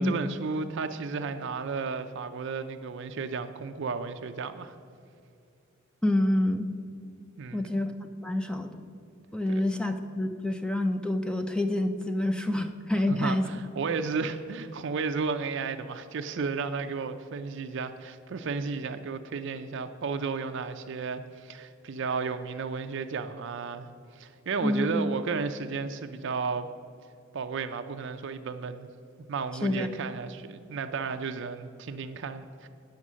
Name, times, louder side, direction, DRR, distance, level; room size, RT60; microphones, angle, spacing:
voice 1, 0.0-4.7 7.4-7.7 9.5-9.6 13.1-23.9 24.1-26.7 27.3-28.9 29.3-32.7, right 4 dB, 60° right, 8 dB, 0.4 m, -33 dB
voice 2, 6.0-6.7 7.5-7.9 8.2-8.9 9.3-13.5 24.6-25.0 29.6-29.9, left 1 dB, 5° left, 7 dB, 0.4 m, -27 dB
9.6 x 6.5 x 6.2 m, 2.5 s
head